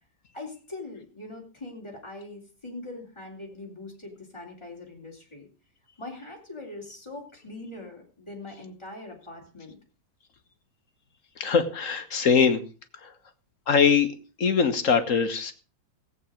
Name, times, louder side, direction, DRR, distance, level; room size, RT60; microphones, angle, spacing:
voice 1, 0.3-5.5 6.0-9.8, left 2 dB, 15° left, 0 dB, 3.4 m, -42 dB
voice 2, 11.4-12.6 13.0-13.1 13.7-14.1 14.4-15.5, left 6 dB, 50° left, 8 dB, 1.5 m, -22 dB
16.0 x 8.2 x 5.0 m, 0.36 s
omnidirectional pair, 1.8 m